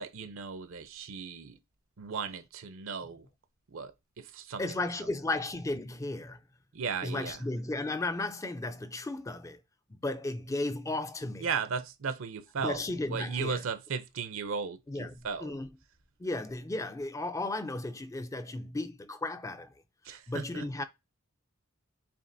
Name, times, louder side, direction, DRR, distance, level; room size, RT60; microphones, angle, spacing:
voice 1, 0.0-1.6 2.0-3.3 3.7-4.6 6.7-7.4 11.4-12.8 13.1-15.4 20.0-20.7, right 5 dB, 70° right, 0.6 m, -36 dB
voice 2, 4.6-6.4 7.0-9.6 9.9-11.5 12.6-13.6 14.9-15.7 16.2-19.8 20.1-20.8, left 2 dB, 15° left, 0.4 m, -35 dB
7.0 x 2.9 x 2.6 m
head